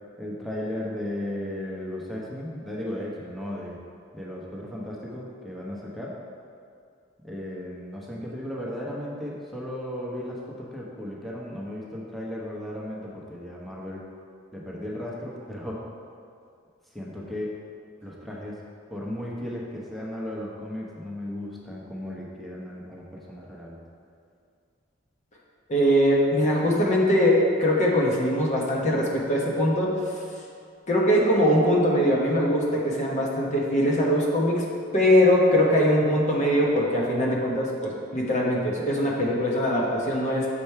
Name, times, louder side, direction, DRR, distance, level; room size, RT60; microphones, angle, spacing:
voice 1, 0.2-3.8 4.1-6.1 7.2-10.4 10.7-14.0 14.5-15.8 16.9-17.6 18.0-18.6 18.9-23.8, left 1 dB, ahead, -5 dB, 1.0 m, -35 dB
voice 2, 25.7-29.9 30.9-34.6 34.9-40.5, equal, 40° left, -3 dB, 1.1 m, -22 dB
6.9 x 5.2 x 4.5 m, 2.3 s
head